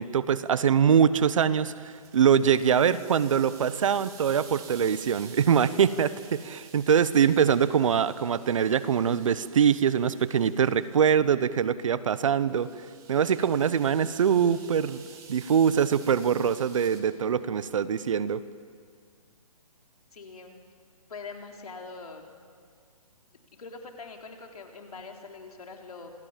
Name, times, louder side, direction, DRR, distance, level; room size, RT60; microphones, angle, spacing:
voice 1, 0.0-12.7 13.1-15.0 15.3-18.4, right 7 dB, 55° right, 15 dB, 1.0 m, -23 dB
sound 1, 1.6-11.1 12.3-17.0, right 6 dB, 15° right, 2.4 m, -51 dB
voice 2, 20.1-20.6 21.1-22.3 23.5-26.1, left 4 dB, 70° left, 2 dB, 3.8 m, -43 dB
27.0 x 17.0 x 7.5 m, 2.1 s
hypercardioid pair, 150°, 20 cm